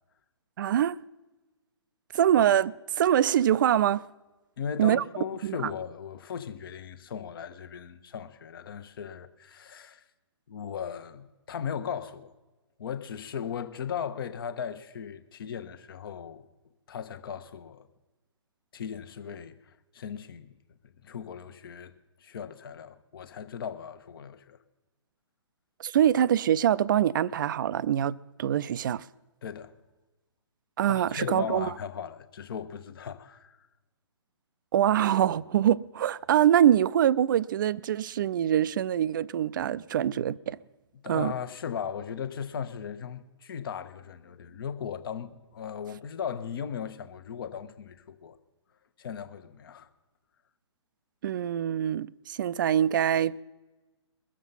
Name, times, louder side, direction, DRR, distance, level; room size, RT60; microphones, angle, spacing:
voice 1, 0.6-1.0 2.1-4.1 4.8-5.0 5.4-5.7 25.8-29.0 30.8-31.7 34.7-40.6 41.1-41.3 51.2-53.4, right 10 dB, 45° right, 0.4 m, -24 dB
voice 2, 4.6-10.0 10.5-12.3 12.8-16.5 16.9-17.9 18.7-20.5 21.0-21.9 22.2-24.6 29.4-29.7 30.9-33.6 41.0-48.4 49.0-49.9, left 7 dB, 50° left, 1.0 m, -37 dB
21.5 x 7.4 x 5.5 m
figure-of-eight pair, 130°, 15 cm